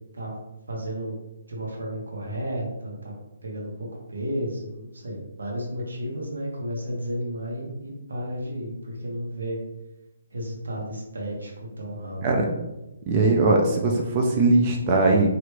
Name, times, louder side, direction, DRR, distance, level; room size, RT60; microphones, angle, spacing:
voice 1, 0.7-1.2 1.5-3.1 3.4-9.6 10.3-12.2, equal, 90° right, -2 dB, 1.0 m, -32 dB
voice 2, 13.1-15.3, right 2 dB, 30° right, 0 dB, 0.4 m, -20 dB
3.1 x 2.5 x 3.1 m, 0.97 s
hypercardioid pair, 155°, 0 cm